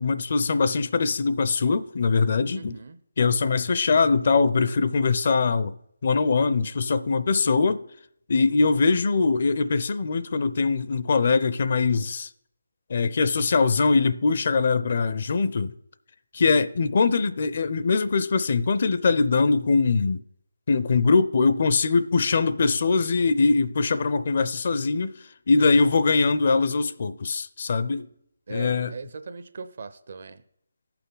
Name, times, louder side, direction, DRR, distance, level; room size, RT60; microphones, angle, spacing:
voice 1, 0.0-2.8 3.2-5.8 6.0-7.8 8.3-12.3 12.9-15.7 16.3-20.2 20.7-25.1 25.5-28.1 28.5-28.9, left 4 dB, 50° left, 0.5 m, -22 dB
voice 2, 2.5-3.0 25.6-26.0 28.5-30.4, right 4 dB, 55° right, 0.7 m, -39 dB
15.0 x 5.8 x 3.9 m
figure-of-eight pair, 155°, 0 cm